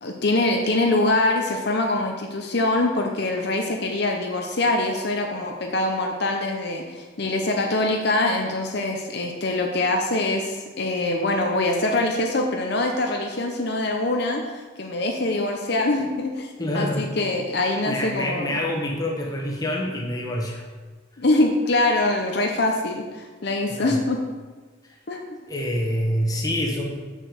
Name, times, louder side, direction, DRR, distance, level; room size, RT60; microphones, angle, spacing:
voice 1, 0.0-18.6 21.2-24.2 25.1-25.4, left 2 dB, 55° left, 2 dB, 0.8 m, -24 dB
voice 2, 16.6-17.1 17.8-20.7 21.1-21.2 23.7-24.0 24.8-25.0 25.5-27.0, left 1 dB, 20° left, 0 dB, 1.2 m, -27 dB
6.7 x 6.3 x 6.6 m, 1.3 s
head